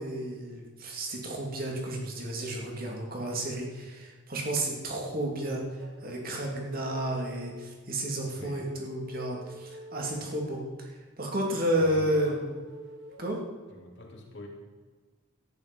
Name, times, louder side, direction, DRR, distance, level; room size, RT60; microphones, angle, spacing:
voice 1, 0.0-5.6 6.0-10.9 11.2-12.5 13.2-13.4, right 1 dB, 45° right, -1 dB, 2.7 m, -31 dB
sound 1, 5.7-7.6 8.5-10.6 11.4-13.3, right 2 dB, 75° right, 2.2 m, -49 dB
voice 2, 8.3-8.7 10.0-10.4 11.7-12.5 13.7-14.5, left 1 dB, 60° left, 0 dB, 2.7 m, -45 dB
14.0 x 10.5 x 5.4 m, 1.4 s
head